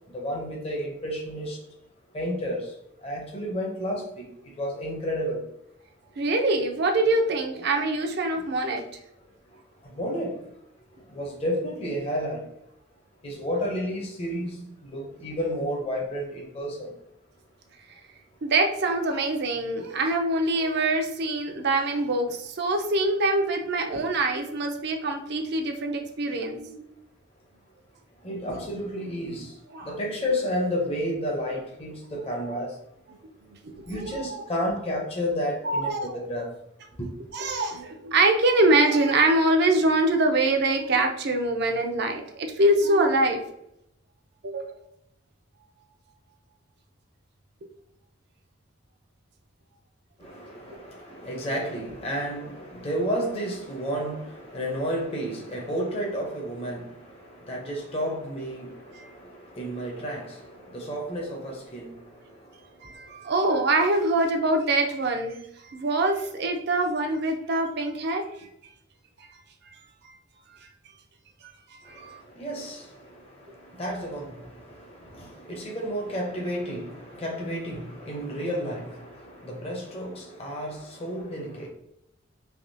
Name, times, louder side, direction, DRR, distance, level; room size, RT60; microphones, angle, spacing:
voice 1, 0.1-1.6 2.1-2.7 3.0-4.3 4.6-5.4 9.9-10.4 11.1-12.4 13.2-14.6 14.8-16.9 28.2-29.5 29.8-32.7 33.9-36.5 37.0-37.1 50.2-62.0 72.4-72.9 73.8-81.7, equal, 30° left, 0.7 m, -31 dB
voice 2, 6.2-8.8 18.4-26.8 29.7-29.9 32.4-32.5 33.6-34.4 35.6-36.2 37.3-43.4 44.4-44.8 58.9-59.0 62.8-68.2 70.0-70.1 71.4-71.5 71.9-72.2, right 2 dB, 60° right, 0.5 m, -24 dB
3.5 x 2.8 x 2.7 m
head